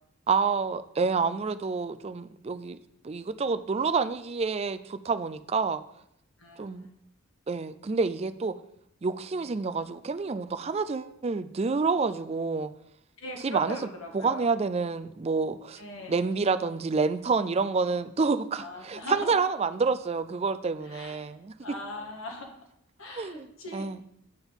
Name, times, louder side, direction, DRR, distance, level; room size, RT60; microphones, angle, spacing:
voice 1, 0.3-2.8 3.0-5.8 6.6-6.9 7.5-8.5 9.0-12.7 13.4-13.8 14.1-15.8 16.1-21.5 23.1-23.5 23.7-24.0, right 4 dB, 30° right, 12 dB, 0.4 m, -28 dB
voice 2, 6.4-7.0 9.4-9.5 13.2-14.4 15.8-16.2 18.6-19.4 20.8-21.3 21.6-22.5 23.0-24.0, left 1 dB, 65° left, 1 dB, 1.8 m, -40 dB
8.9 x 3.9 x 7.0 m, 0.76 s
head